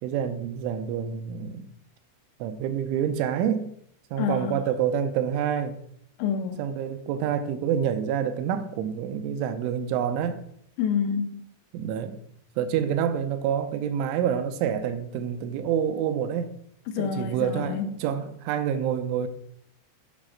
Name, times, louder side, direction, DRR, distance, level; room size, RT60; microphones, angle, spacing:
voice 1, 0.0-1.7 2.4-3.7 4.1-5.8 6.6-10.4 11.7-12.2 12.6-16.5 17.0-19.3, right 8 dB, 85° right, 3.0 m, -27 dB
voice 2, 4.2-4.6 6.2-6.6 10.8-11.4 16.9-17.9, left 7 dB, 90° left, 2.6 m, -28 dB
11.5 x 4.2 x 6.3 m
omnidirectional pair, 5.7 m